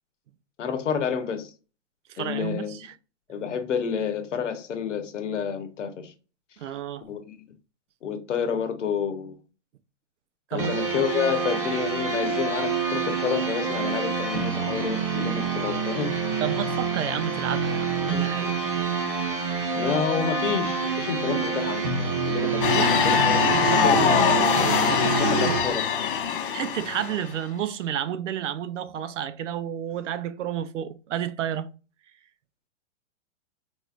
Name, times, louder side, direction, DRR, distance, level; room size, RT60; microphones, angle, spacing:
voice 1, 0.6-1.5 2.2-2.8 3.3-6.1 7.1-7.3 8.0-9.4 10.5-16.4 19.8-23.4 23.7-24.3 25.2-26.2, left 7 dB, 80° left, 1.1 m, -29 dB
voice 2, 2.1-2.9 6.6-7.1 10.5-10.7 16.4-18.6 22.5-25.8 26.5-31.7, right 9 dB, 85° right, 0.6 m, -31 dB
sound 1, 10.6-25.6, right 5 dB, 25° right, 0.9 m, -27 dB
sound 2, 22.6-27.3, left 7 dB, 45° left, 0.7 m, -23 dB
4.4 x 3.1 x 2.5 m
hypercardioid pair, 175°, 36 cm